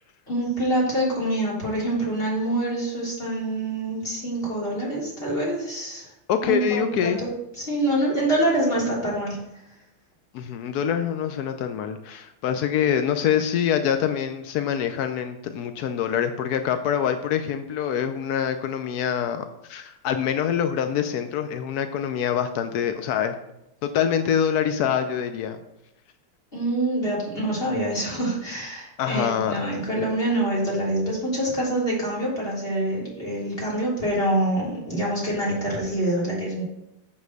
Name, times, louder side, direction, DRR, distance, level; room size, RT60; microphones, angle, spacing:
voice 1, 0.3-6.1 6.4-9.4 26.5-36.6, right 1 dB, 25° left, -6 dB, 3.7 m, -26 dB
voice 2, 6.3-7.2 10.3-23.3 23.8-25.6 29.0-29.6, left 8 dB, 80° left, 8 dB, 0.8 m, -25 dB
7.5 x 5.8 x 6.5 m, 0.85 s
omnidirectional pair, 2.4 m